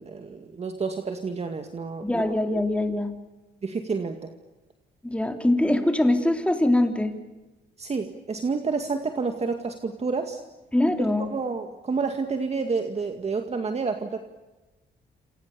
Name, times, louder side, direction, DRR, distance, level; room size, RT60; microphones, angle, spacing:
voice 1, 0.0-2.3 3.6-4.3 7.8-10.4 11.3-14.2, right 4 dB, 35° right, 5 dB, 2.1 m, -29 dB
voice 2, 2.0-3.1 5.0-7.1 10.7-11.3, left 1 dB, 5° left, 5 dB, 3.4 m, -23 dB
28.5 x 28.0 x 7.0 m, 1.1 s
cardioid pair, 120°, 19 cm